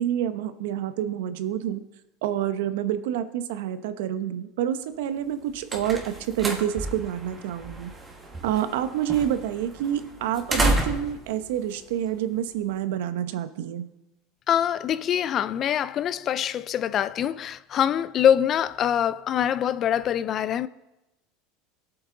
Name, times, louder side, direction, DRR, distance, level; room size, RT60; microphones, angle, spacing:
voice 1, 0.0-1.8 2.2-7.9 8.4-13.8, right 10 dB, 80° right, 0.8 m, -28 dB
sound 1, 5.2-12.7, right 1 dB, 15° right, 1.7 m, -32 dB
voice 2, 14.5-20.7, left 9 dB, 35° left, 0.3 m, -24 dB
17.5 x 7.9 x 3.8 m
supercardioid pair, 130°, 0 cm